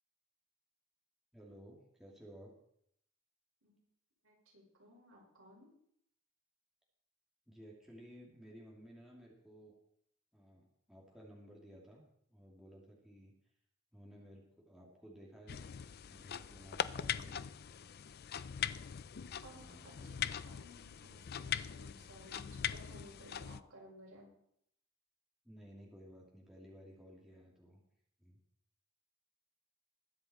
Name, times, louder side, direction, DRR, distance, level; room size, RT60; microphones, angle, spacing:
voice 1, 1.3-2.5 7.5-9.8 10.3-12.0 12.3-13.3 13.9-15.6 16.1-17.5 19.5-20.2 21.9-22.0 25.4-27.8 28.2-28.4, equal, ahead, -3 dB, 2.5 m, -56 dB
voice 2, 4.2-5.7 19.4-24.3, equal, 70° right, -3 dB, 5.5 m, -58 dB
sound 1, 15.5-23.6, left 9 dB, 45° left, 0.4 m, -41 dB
21.0 x 7.8 x 4.3 m, 0.72 s
head